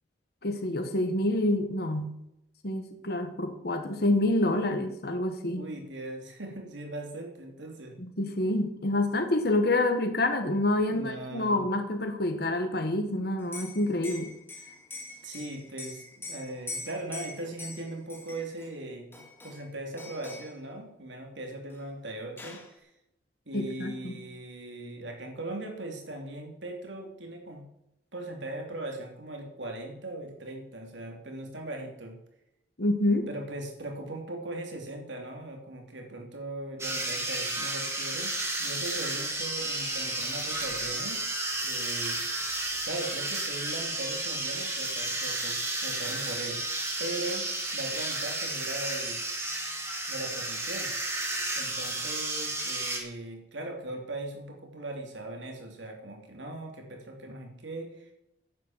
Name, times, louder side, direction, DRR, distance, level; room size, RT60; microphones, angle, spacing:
voice 1, 0.4-2.1 2.6-5.7 8.0-14.3 23.5-24.2 32.8-33.3, left 1 dB, 55° left, 6 dB, 1.5 m, -27 dB
voice 2, 5.5-8.0 10.8-11.7 15.2-19.0 19.4-22.9 23.5-27.6 28.1-32.2 33.3-38.3 38.6-41.2 41.6-42.2 42.8-46.6 47.0-47.4 47.7-49.2 50.1-50.9 51.6-58.1, right 2 dB, 85° right, 2 dB, 3.3 m, -39 dB
Liquid, 13.4-18.7 19.1-19.7 20.0-20.6 21.7-21.8 22.1-22.7, left 3 dB, 15° left, 2.6 m, -43 dB
sound 1, 36.8-53.0, right 2 dB, 15° right, 2.4 m, -32 dB
10.5 x 9.4 x 7.4 m, 0.82 s
head